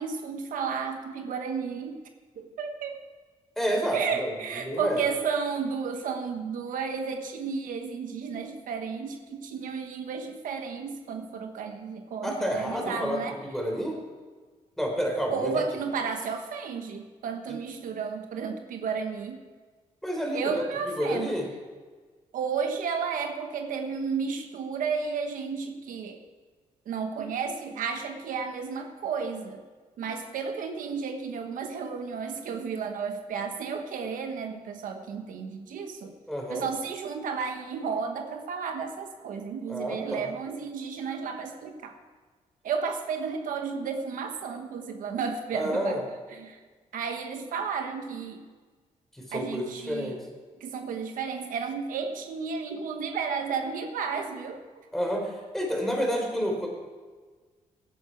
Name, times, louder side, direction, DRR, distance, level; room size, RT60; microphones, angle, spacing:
voice 1, 0.0-2.0 2.3-3.0 3.9-13.4 15.3-19.4 20.3-21.3 22.3-26.2 26.8-29.6 30.0-36.1 36.5-42.0 42.6-46.0 46.3-46.6 46.9-48.4 49.3-50.1 50.6-54.9, right 5 dB, 80° right, 5 dB, 1.2 m, -32 dB
voice 2, 3.6-4.3 4.6-5.0 12.2-13.2 13.5-14.0 14.8-15.5 20.0-20.6 21.0-21.5 36.3-36.7 39.7-40.3 45.5-46.0 49.1-50.2 54.9-56.7, equal, ahead, 0 dB, 4.1 m, -29 dB
17.5 x 9.7 x 4.6 m, 1.4 s
cardioid pair, 85°, 14 cm